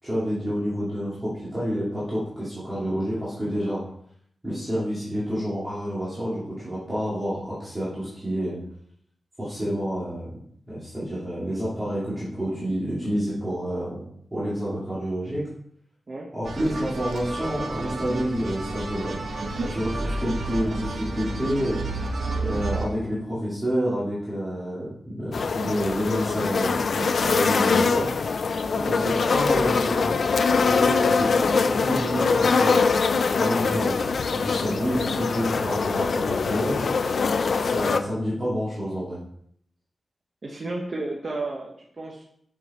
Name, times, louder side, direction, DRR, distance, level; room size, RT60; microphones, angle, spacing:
voice 1, 0.0-3.8 4.4-8.6 9.4-10.4 10.7-14.0 14.3-15.5 16.3-19.2 19.7-21.8 22.4-28.1 28.7-32.8 33.4-36.8 37.6-39.2, equal, 15° right, -9 dB, 2.5 m, -29 dB
sound 1, 16.4-22.8, right 2 dB, 75° right, 1.2 m, -31 dB
sound 2, 25.3-38.0, left 4 dB, 65° left, 0.5 m, -23 dB
voice 2, 40.4-42.2, right 2 dB, 40° right, 0 dB, 1.0 m, -33 dB
6.9 x 6.4 x 4.3 m, 0.67 s
wide cardioid pair, 160°, 0 cm